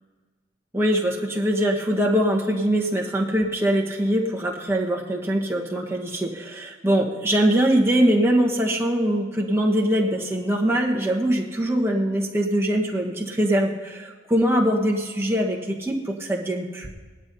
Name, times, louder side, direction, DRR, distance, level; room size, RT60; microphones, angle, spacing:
voice 1, 0.7-16.9, right 1 dB, 15° right, -1 dB, 1.3 m, -22 dB
19.0 x 12.5 x 2.8 m, 1.4 s
head